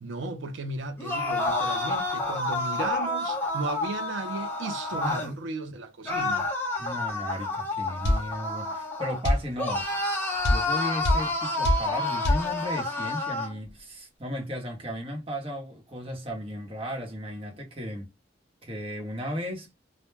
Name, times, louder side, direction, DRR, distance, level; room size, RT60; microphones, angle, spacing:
voice 1, 0.0-6.5, right 3 dB, 85° right, 0.5 m, -35 dB
sound 1, 1.0-5.3 6.1-9.2 9.6-13.5, left 2 dB, 10° left, 0.6 m, -29 dB
voice 2, 6.8-9.9 10.5-18.1 18.6-19.7, equal, 30° right, 0.8 m, -35 dB
sound 2, 8.0-8.3 9.2-9.5 10.4-10.7 11.0-11.3 11.6-11.9 12.2-12.5, left 1 dB, 65° left, 0.8 m, -22 dB
2.1 x 2.0 x 3.1 m
head